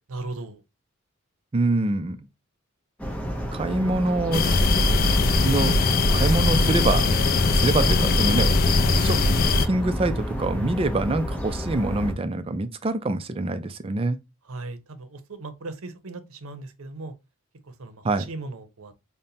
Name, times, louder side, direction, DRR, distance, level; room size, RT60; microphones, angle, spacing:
voice 1, 0.1-0.6 14.4-17.1 17.6-18.9, right 2 dB, 75° right, 0.7 m, -37 dB
voice 2, 1.5-2.2 3.5-4.7 5.4-5.7 6.1-7.1 7.5-8.5 8.8-9.2 9.7-14.2 18.0-18.2, right 2 dB, 25° right, 0.3 m, -25 dB
sound 1, 3.0-12.1, equal, 5° left, 0.7 m, -30 dB
sound 2, 4.3-9.7, left 3 dB, 40° left, 0.4 m, -20 dB
5.3 x 2.1 x 2.7 m
head